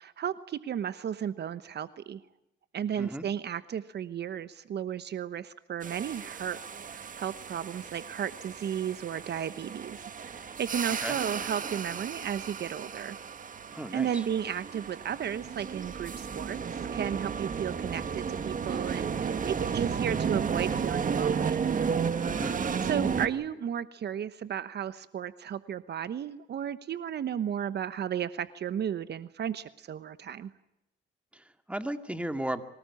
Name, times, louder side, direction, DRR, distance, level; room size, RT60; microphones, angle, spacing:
voice 1, 0.0-2.2 2.7-6.6 6.8-13.2 13.9-21.7 22.8-30.5, right 9 dB, 60° right, 14 dB, 1.1 m, -34 dB
sound 1, 5.8-23.3, right 6 dB, 40° right, 1.7 m, -33 dB
voice 2, 13.7-14.2 22.2-22.6 31.3-32.6, right 1 dB, 5° right, 8 dB, 2.1 m, -35 dB
25.5 x 18.5 x 8.5 m, 0.85 s
cardioid pair, 90°, 20 cm